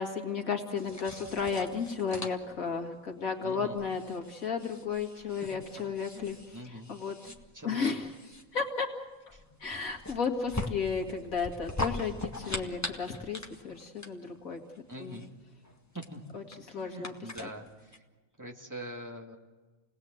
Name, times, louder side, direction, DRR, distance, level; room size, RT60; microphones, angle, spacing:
voice 1, 0.0-6.4 6.6-7.3 7.6-8.1 8.5-8.9 9.6-14.6 15.0-15.2 16.3-17.1 17.4-17.5, left 5 dB, 90° left, 2 dB, 2.5 m, -33 dB
sound 1, 0.8-18.0, left 1 dB, 10° left, 1.6 m, -42 dB
voice 2, 3.4-3.8 5.1-5.5 6.1-6.9 7.5-7.9 9.3-9.4 14.9-15.3 15.9-16.2 16.7-18.0 18.4-19.4, equal, 15° right, 2 dB, 2.2 m, -44 dB
29.5 x 19.5 x 7.9 m, 1.3 s
omnidirectional pair, 1.4 m